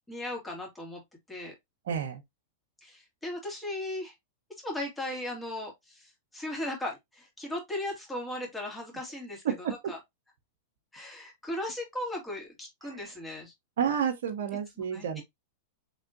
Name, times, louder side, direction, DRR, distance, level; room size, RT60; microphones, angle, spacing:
voice 1, 0.1-1.0 1.3-1.5 2.8-4.1 4.6-9.4 9.9-10.0 10.9-13.5 14.8-15.2, left 1 dB, 10° left, 2.2 m, -37 dB
voice 2, 1.8-2.2 9.4-9.9 12.8-13.0 13.8-15.2, right 8 dB, 70° right, 0.9 m, -30 dB
4.2 x 3.5 x 2.5 m
hypercardioid pair, 115°, 0 cm